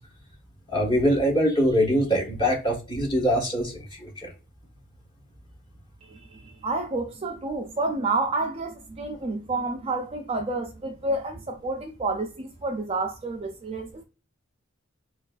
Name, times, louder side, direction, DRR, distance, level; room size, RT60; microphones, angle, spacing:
voice 1, 0.7-4.3, equal, 25° left, 1.4 m, -23 dB
voice 2, 6.1-14.0, right 2 dB, 30° right, 0.4 m, -29 dB
4.4 x 2.4 x 2.5 m
head